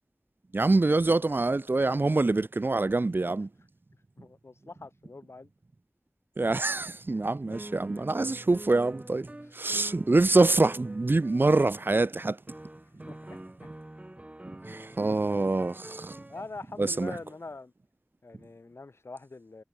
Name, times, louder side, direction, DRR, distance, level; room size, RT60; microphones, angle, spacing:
voice 1, 0.5-3.5 6.4-9.3 9.5-12.4 14.6-16.2 16.8-17.2, right 2 dB, 55° right, 0.6 m, -25 dB
voice 2, 4.2-5.5 7.5-7.8 13.1-13.7 14.7-14.8 16.3-17.7 18.2-19.6, left 3 dB, 85° left, 3.1 m, -44 dB
sound 1, 7.5-11.6 12.5-16.5, right 1 dB, 30° right, 3.9 m, -46 dB
wide cardioid pair, 55°, 4 cm